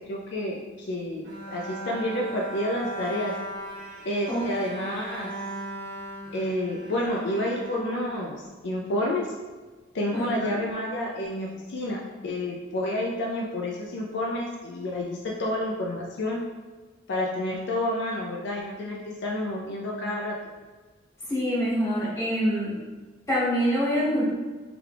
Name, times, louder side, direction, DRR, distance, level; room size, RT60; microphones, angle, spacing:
voice 1, 0.1-3.3 4.0-5.3 6.3-9.2 9.9-16.4 17.1-20.3, left 1 dB, 60° left, -2 dB, 0.5 m, -29 dB
Bowed string instrument, 1.2-8.6, right 1 dB, 75° right, 1.3 m, -38 dB
voice 2, 10.1-10.5 21.3-22.7 23.3-24.3, equal, 15° left, -10 dB, 1.5 m, -25 dB
4.8 x 3.3 x 2.4 m, 1.3 s
head